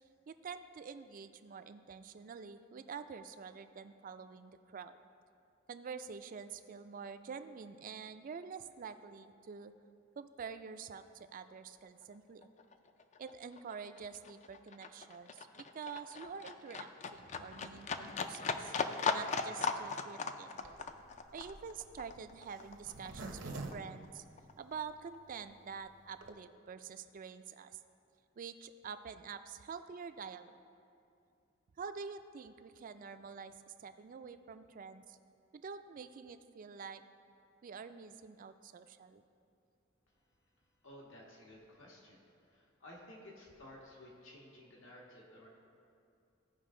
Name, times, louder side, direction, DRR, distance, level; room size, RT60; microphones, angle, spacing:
voice 1, 0.3-4.9 5.7-9.7 10.2-12.5 13.2-18.7 19.1-20.7 21.3-24.2 24.6-27.8 28.4-30.6 31.8-35.2 35.5-37.0 37.6-39.2, right 6 dB, 45° right, 11 dB, 0.3 m, -47 dB
Livestock farm animals working animals, 12.0-12.1 12.4-23.4 23.7-24.7 25.1-25.2, left 4 dB, 35° left, 0.4 m, -39 dB
Zipper (clothing), 20.6-24.9 25.4-25.5 25.7-25.8 26.0-26.3, right 2 dB, 65° right, 0.7 m, -47 dB
voice 2, 40.8-45.5, left 1 dB, 75° left, -3 dB, 1.4 m, -55 dB
14.5 x 5.2 x 3.7 m, 2.5 s
head